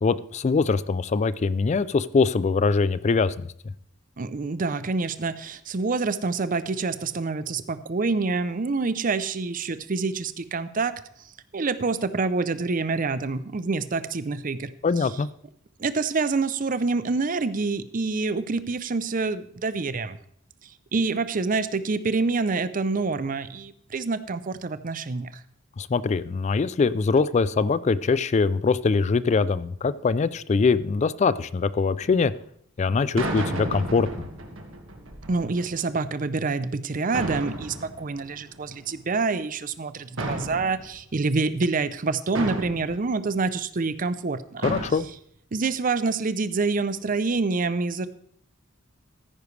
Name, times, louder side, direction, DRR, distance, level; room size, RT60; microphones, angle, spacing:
voice 1, 0.0-3.5 14.8-15.3 25.8-32.3 32.8-34.1 44.6-45.1, left 4 dB, 35° left, 17 dB, 0.3 m, -23 dB
voice 2, 4.2-10.9 11.5-14.7 15.8-20.2 20.6-25.4 35.3-44.6 45.5-48.1, right 3 dB, 45° right, 14 dB, 0.6 m, -27 dB
sound 1, 31.9-32.2 33.2-35.8 37.1-38.9 40.2-41.1 42.3-43.0 44.6-44.9, right 1 dB, 90° right, 1.8 m, -33 dB
14.0 x 10.0 x 3.3 m, 0.66 s
head